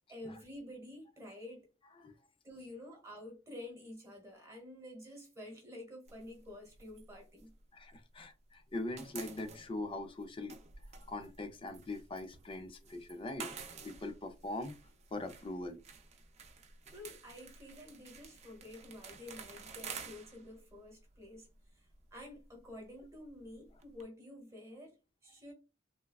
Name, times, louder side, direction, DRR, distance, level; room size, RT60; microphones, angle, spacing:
voice 1, 0.1-1.7 2.4-7.5 16.9-21.5 21.7-25.5, left 1 dB, 15° right, 1.1 m, -50 dB
sound 1, 6.1-8.3 8.6-24.0, right 5 dB, 35° right, 0.5 m, -52 dB
voice 2, 7.7-14.8 15.1-15.8, left 2 dB, 25° left, 0.4 m, -42 dB
3.4 x 2.1 x 2.3 m
head